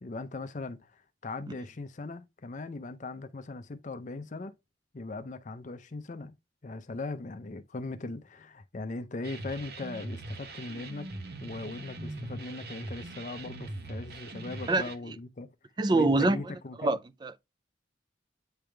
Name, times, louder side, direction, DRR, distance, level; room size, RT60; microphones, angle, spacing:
voice 1, 0.0-4.6 4.9-6.4 6.6-11.1 11.4-15.5 15.9-17.0, left 3 dB, 40° left, 0.5 m, -39 dB
sound 1, 9.2-15.0, right 2 dB, 55° right, 0.9 m, -41 dB
voice 2, 15.8-16.4 16.8-17.4, right 2 dB, 25° right, 0.4 m, -25 dB
8.8 x 3.4 x 3.3 m
head